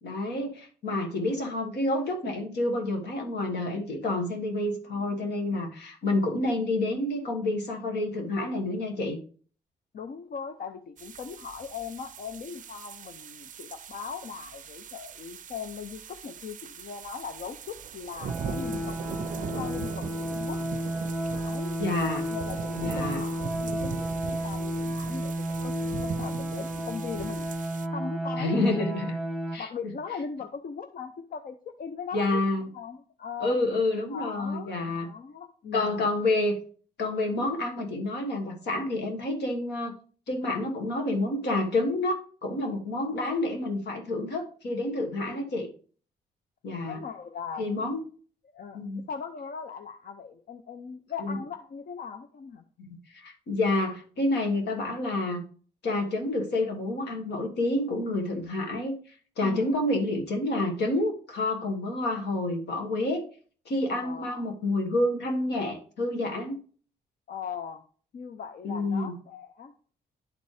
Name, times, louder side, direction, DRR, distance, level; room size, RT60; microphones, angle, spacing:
voice 1, 0.0-9.2 21.8-22.3 22.8-23.2 28.4-29.2 29.5-29.7 32.1-32.7 33.4-35.1 35.7-36.6 37.0-39.9 40.3-42.2 42.4-45.7 46.6-47.0 47.6-48.0 48.7-49.0 51.2-51.4 52.8-55.4 55.8-59.0 59.4-63.2 63.6-66.6 68.6-69.1, left 2 dB, 80° left, 2 dB, 1.6 m, -28 dB
voice 2, 9.9-19.0 19.4-20.6 21.2-21.7 22.3-25.7 26.0-27.5 27.9-29.0 29.6-33.6 34.1-36.0 45.2-45.4 46.9-47.6 48.5-52.6 59.4-59.8 63.9-64.5 67.3-67.8 68.1-69.7, left 6 dB, 60° left, 7 dB, 0.6 m, -39 dB
sound 1, 11.0-27.9, right 7 dB, 50° right, 0.4 m, -40 dB
sound 2, 18.3-29.6, right 1 dB, ahead, 1.0 m, -32 dB
10.5 x 4.1 x 3.3 m, 0.43 s
cardioid pair, 65°, 17 cm